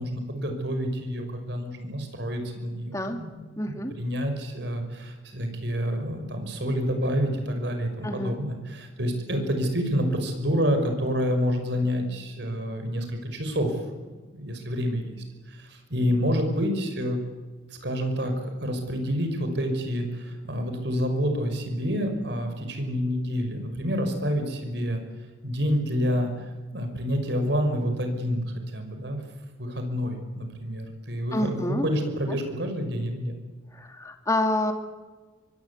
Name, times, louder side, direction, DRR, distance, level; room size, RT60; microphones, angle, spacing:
voice 1, 0.0-3.4 3.6-13.7 14.0-17.2 17.8-25.0 25.4-26.3 26.7-28.4 28.7-29.2 29.6-33.4, equal, 60° right, 5 dB, 5.7 m, -28 dB
voice 2, 3.6-3.9 8.0-8.4 31.3-31.9 32.3-32.4 33.7-34.7, left 1 dB, 15° left, 5 dB, 2.5 m, -28 dB
24.0 x 24.0 x 8.4 m, 1.3 s
head